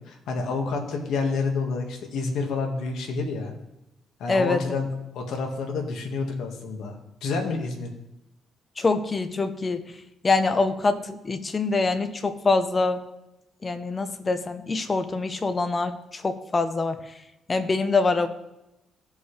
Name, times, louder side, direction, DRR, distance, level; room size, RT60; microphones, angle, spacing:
voice 1, 0.0-3.5 4.2-6.9 7.2-7.9, left 4 dB, 80° left, 2 dB, 1.7 m, -29 dB
voice 2, 4.3-4.6 8.8-9.8 10.2-13.0 13.6-17.0 17.5-18.3, left 3 dB, 30° left, 10 dB, 0.8 m, -24 dB
16.5 x 5.5 x 3.3 m, 0.92 s
cardioid pair, 90°, 0 cm